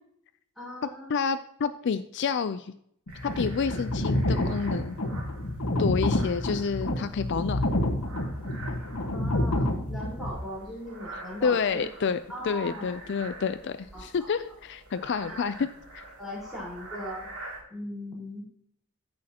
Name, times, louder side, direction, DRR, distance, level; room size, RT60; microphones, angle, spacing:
voice 1, 0.6-1.1 9.1-11.8 12.3-12.9 13.9-14.3 15.2-15.7 16.2-17.3 17.7-18.5, equal, ahead, -6 dB, 4.3 m, -39 dB
voice 2, 1.1-2.7 3.2-5.0 5.8-7.6 11.4-12.2 12.4-16.0, left 5 dB, 55° left, 12 dB, 0.4 m, -29 dB
sound 1, 3.1-10.3, left 1 dB, 85° left, 1.4 m, -28 dB
sound 2, 3.1-17.6, right 2 dB, 85° right, 3.5 m, -46 dB
14.5 x 6.4 x 2.9 m, 0.68 s
head